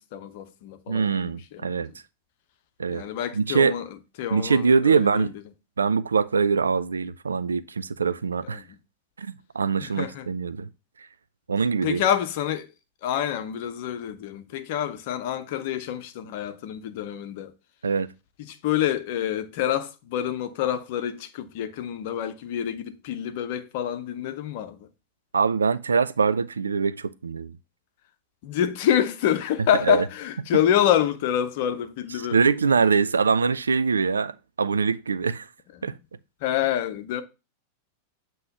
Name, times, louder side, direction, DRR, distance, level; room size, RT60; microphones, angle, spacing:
voice 1, 0.0-1.9 2.9-5.3 8.4-8.8 9.8-10.3 11.8-12.7 13.0-17.5 18.4-24.9 28.4-32.5 35.9-36.0 36.4-37.2, left 10 dB, 50° left, 0.8 m, -27 dB
voice 2, 0.9-1.9 2.8-3.0 3.3-3.7 4.3-5.3 5.8-8.6 9.2-10.7 11.5-12.0 17.8-18.1 25.3-27.5 29.9-30.0 32.3-35.5 35.8-36.0, right 5 dB, 75° right, 0.4 m, -23 dB
7.7 x 3.0 x 5.9 m
figure-of-eight pair, 90°, 0 cm